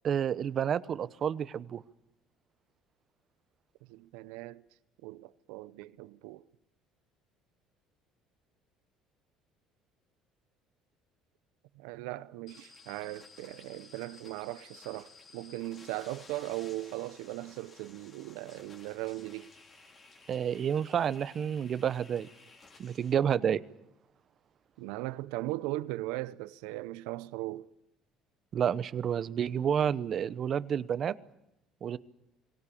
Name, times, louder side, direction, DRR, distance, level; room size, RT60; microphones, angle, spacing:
voice 1, 0.0-1.8 20.3-22.3 22.8-23.6 28.5-31.1 31.8-32.0, right 8 dB, 45° right, 0.9 m, -30 dB
voice 2, 3.9-4.6 5.0-6.4 11.8-19.5 24.8-27.7, right 18 dB, 85° right, 0.7 m, -38 dB
sound 1, 12.5-23.1, left 3 dB, 35° left, 4.0 m, -55 dB
23.5 x 17.5 x 8.5 m
supercardioid pair, 100°, 0 cm